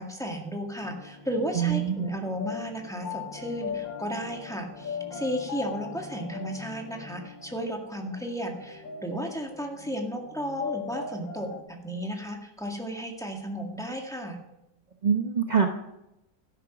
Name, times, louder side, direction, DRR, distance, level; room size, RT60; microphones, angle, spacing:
voice 1, 0.0-14.4, equal, ahead, 1 dB, 1.8 m, -34 dB
sound 1, 0.8-11.6, left 6 dB, 85° left, 2.1 m, -40 dB
voice 2, 1.6-2.0 15.0-15.7, right 7 dB, 45° right, 4 dB, 0.5 m, -24 dB
13.0 x 11.0 x 6.1 m, 0.90 s
omnidirectional pair, 2.0 m